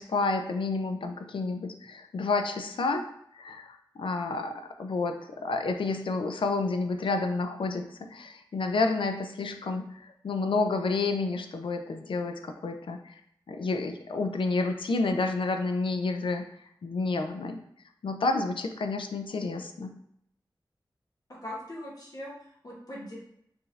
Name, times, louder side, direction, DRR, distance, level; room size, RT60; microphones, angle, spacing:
voice 1, 0.0-3.1 3.3-13.2 13.5-16.5 16.8-17.6 18.0-19.9, left 3 dB, 85° left, 5 dB, 0.5 m, -30 dB
voice 2, 21.3-23.2, left 1 dB, 50° left, -5 dB, 1.4 m, -41 dB
4.5 x 2.7 x 3.2 m, 0.72 s
wide cardioid pair, 75°, 8 cm